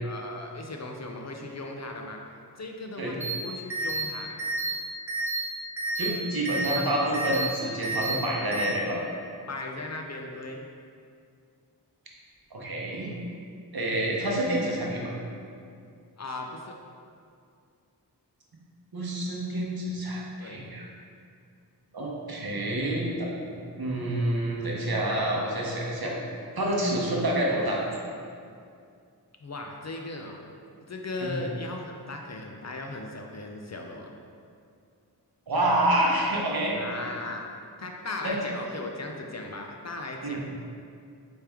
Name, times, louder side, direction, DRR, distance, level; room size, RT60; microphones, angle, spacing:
voice 1, 0.0-2.2 2.6-4.4 6.7-6.9 9.5-10.7 16.2-16.8 20.4-20.6 29.4-30.4 30.8-34.1 36.7-37.5 37.8-40.6, left 2 dB, 45° left, 2 dB, 0.4 m, -37 dB
sound 1, 3.2-3.3 3.7-4.0 4.4-4.7 5.1-5.4 5.8-6.1 6.5-6.8 7.1-7.5 7.8-8.1 8.5-8.6, right 2 dB, 5° right, 0.9 m, -30 dB
voice 2, 6.0-9.0 12.5-13.1 13.7-15.1 18.9-20.9 21.9-23.3 23.8-26.2 26.5-27.8 31.2-31.4 35.5-36.8 38.2-38.3 40.2-40.4, right 1 dB, 65° right, -3 dB, 0.9 m, -28 dB
4.4 x 3.4 x 3.4 m, 2.4 s
wide cardioid pair, 50°, 40 cm